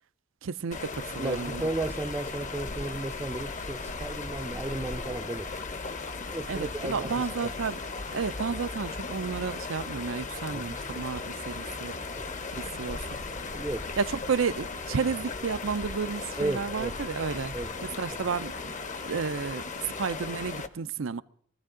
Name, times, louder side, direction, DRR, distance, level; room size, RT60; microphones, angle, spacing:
voice 1, 0.4-1.6 6.5-7.8 8.1-12.0 12.5-13.1 14.0-17.5 17.8-18.7 19.0-19.6 20.0-21.2, right 5 dB, 75° right, 0.5 m, -32 dB
sound 1, 0.7-20.7, left 4 dB, 40° left, 0.9 m, -37 dB
voice 2, 1.1-5.5 6.3-7.5 10.5-10.8 12.2-12.3 13.5-13.8 16.4-16.9 17.5-17.7 18.1-18.2, right 2 dB, 10° right, 0.5 m, -34 dB
23.0 x 15.0 x 3.8 m
head